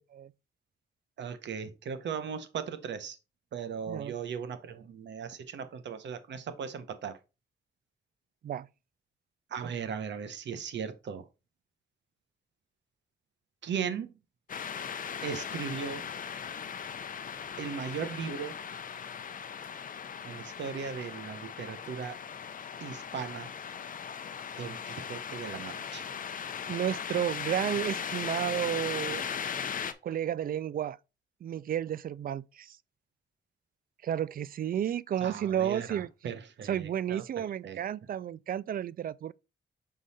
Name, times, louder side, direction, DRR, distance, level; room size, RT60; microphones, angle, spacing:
voice 1, 1.2-3.2 3.5-7.2 9.5-11.2 13.6-14.1 15.2-16.1 17.6-18.5 20.2-22.2 22.8-23.5 24.6-26.1 35.2-37.2 37.6-37.8, right 7 dB, 75° right, 1.0 m, -37 dB
sound 1, 14.5-29.9, left 7 dB, 45° left, 0.6 m, -38 dB
voice 2, 26.7-29.3 30.0-31.0 31.4-32.8 34.0-36.1 36.6-39.3, right 10 dB, 50° right, 0.4 m, -32 dB
6.2 x 3.9 x 4.1 m
cardioid pair, 105°, 19 cm